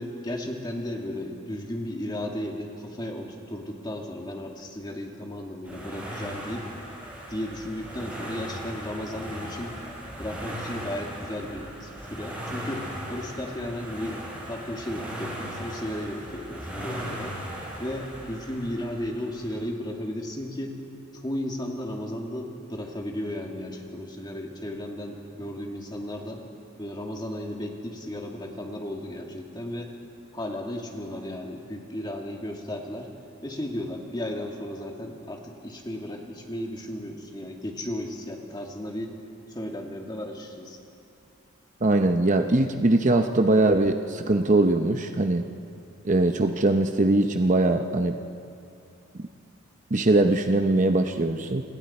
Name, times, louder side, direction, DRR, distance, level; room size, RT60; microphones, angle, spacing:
voice 1, 0.0-6.7 7.3-9.8 10.2-14.2 14.5-17.4 17.8-20.8 21.2-26.4 26.8-29.9 30.3-33.1 33.4-39.2 39.5-40.8, left 1 dB, 20° left, 1 dB, 2.3 m, -34 dB
sound 1, 5.6-19.6, equal, 5° right, 5.8 m, -38 dB
voice 2, 41.8-45.4 46.0-48.2 49.2-49.3 49.9-51.6, right 2 dB, 35° right, 6 dB, 0.8 m, -21 dB
29.0 x 27.5 x 4.4 m, 2.6 s
head